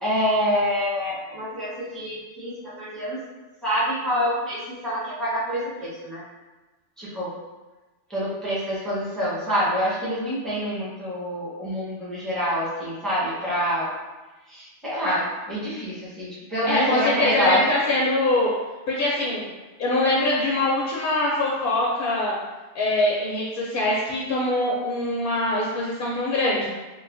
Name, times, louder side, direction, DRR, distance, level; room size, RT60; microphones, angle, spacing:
voice 1, 0.0-3.2 3.6-6.2 7.0-7.3 8.1-13.9 14.5-17.7, equal, ahead, -9 dB, 0.7 m, -26 dB
voice 2, 16.6-18.5 18.9-19.5 19.8-22.3 22.7-26.7, left 2 dB, 60° left, -5 dB, 0.6 m, -23 dB
3.0 x 2.7 x 2.5 m, 1.2 s
omnidirectional pair, 1.3 m